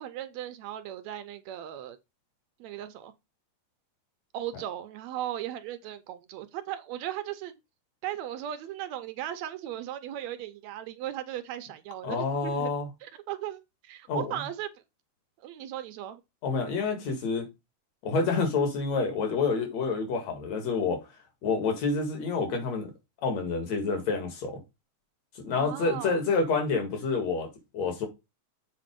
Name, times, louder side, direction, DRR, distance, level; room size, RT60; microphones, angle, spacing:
voice 1, 0.0-2.0 2.6-3.1 4.3-7.5 8.0-12.7 13.0-14.7 15.4-16.2 25.6-26.2, right 12 dB, 75° right, 1.9 m, -37 dB
voice 2, 12.0-12.9 14.1-14.4 16.4-17.5 18.0-21.0 21.4-22.9 23.2-24.6 25.4-28.1, left 4 dB, 65° left, 3.1 m, -28 dB
7.7 x 4.2 x 5.1 m
omnidirectional pair, 3.3 m